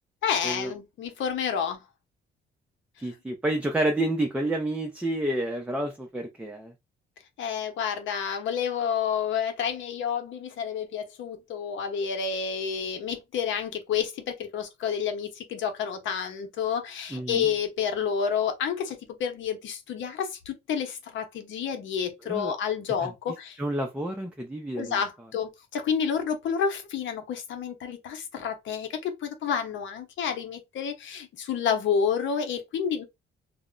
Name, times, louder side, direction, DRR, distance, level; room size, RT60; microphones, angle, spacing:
voice 1, 0.2-1.8 7.4-23.6 24.8-33.0, left 7 dB, 75° left, 0.8 m, -29 dB
voice 2, 3.0-6.7 17.1-17.5 22.3-22.5 23.6-25.0, right 1 dB, 5° right, 0.4 m, -29 dB
2.1 x 2.0 x 3.7 m
cardioid pair, 90°, 20 cm